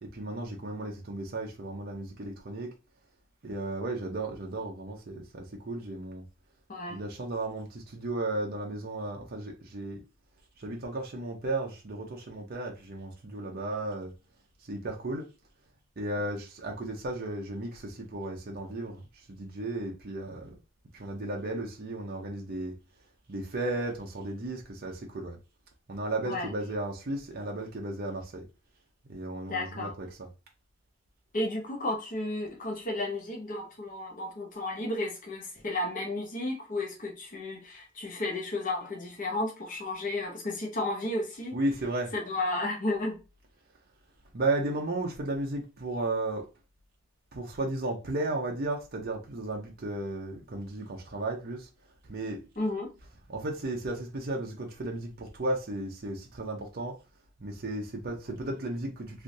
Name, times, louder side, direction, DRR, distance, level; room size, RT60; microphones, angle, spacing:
voice 1, 0.0-2.7 3.4-6.2 6.9-10.0 10.6-14.1 14.6-15.3 16.0-19.0 19.3-20.6 20.9-22.7 23.3-25.4 25.9-28.4 29.1-30.3 41.5-42.1 44.3-46.5 47.3-51.7 52.0-52.4 53.3-57.0 57.4-59.2, right 2 dB, 45° right, 0.6 m, -34 dB
voice 2, 29.5-29.9 31.3-41.5 42.1-43.2 52.6-52.9, left 2 dB, 40° left, 0.8 m, -33 dB
3.3 x 2.6 x 2.7 m
head